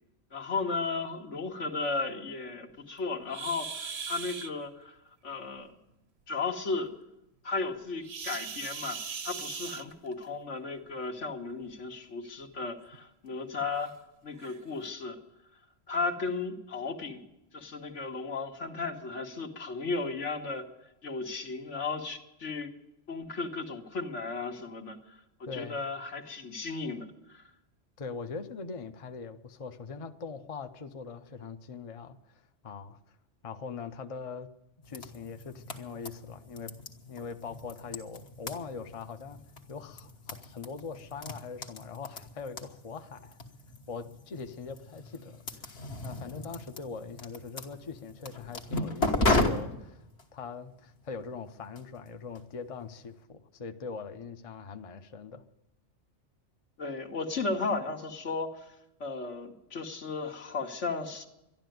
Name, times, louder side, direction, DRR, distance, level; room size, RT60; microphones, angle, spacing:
voice 1, 0.3-5.0 5.2-5.7 6.3-6.9 7.4-13.9 14.2-15.2 15.9-17.3 17.5-20.7 21.0-22.7 23.1-25.0 25.4-27.4 56.8-58.6 59.0-61.3, left 3 dB, 80° left, 3 dB, 1.9 m, -35 dB
sound 1, 3.3-4.5 8.0-10.3 11.5-11.7 12.3-12.4 12.9-13.0 13.8-13.9 14.4-14.6, right 6 dB, 65° right, 1.1 m, -39 dB
voice 2, 25.5-25.8 28.0-33.0 33.4-34.5 34.9-36.7 37.0-39.4 39.7-43.4 43.9-45.7 46.0-50.1 50.3-55.4, left 5 dB, 35° left, 7 dB, 0.7 m, -42 dB
sound 2, 34.8-53.1, left 2 dB, 65° left, 1.7 m, -36 dB
12.0 x 11.5 x 9.2 m, 0.88 s
omnidirectional pair, 1.2 m